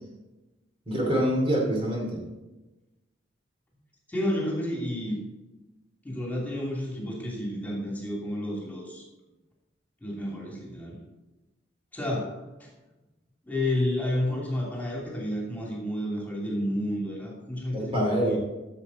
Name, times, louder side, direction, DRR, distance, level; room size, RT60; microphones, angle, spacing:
voice 1, 0.9-2.2 17.7-18.4, right 1 dB, 30° right, -2 dB, 2.6 m, -25 dB
voice 2, 4.1-5.2 6.0-9.0 10.0-11.0 11.9-12.7 13.5-18.4, left 1 dB, 10° left, -4 dB, 2.8 m, -31 dB
13.0 x 7.6 x 4.1 m, 1.1 s
head